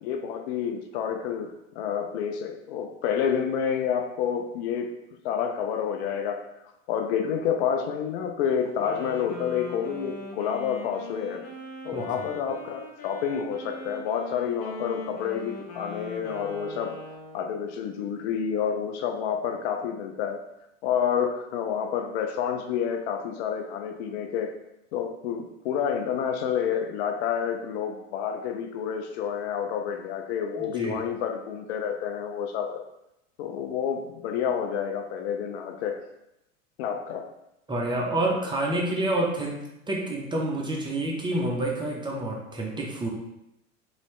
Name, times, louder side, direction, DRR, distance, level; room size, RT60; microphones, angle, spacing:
voice 1, 0.0-4.9 5.2-6.4 6.9-11.4 11.8-16.9 17.3-20.4 20.8-24.5 24.9-32.8 33.4-36.0 36.8-37.2, left 8 dB, 60° left, 5 dB, 0.5 m, -29 dB
Wind instrument woodwind instrument, 8.6-17.6, left 2 dB, 40° left, 0.9 m, -41 dB
voice 2, 30.6-31.0 37.7-43.1, right 1 dB, 10° right, -2 dB, 0.6 m, -28 dB
3.1 x 2.7 x 3.1 m, 0.87 s
hypercardioid pair, 90°, 38 cm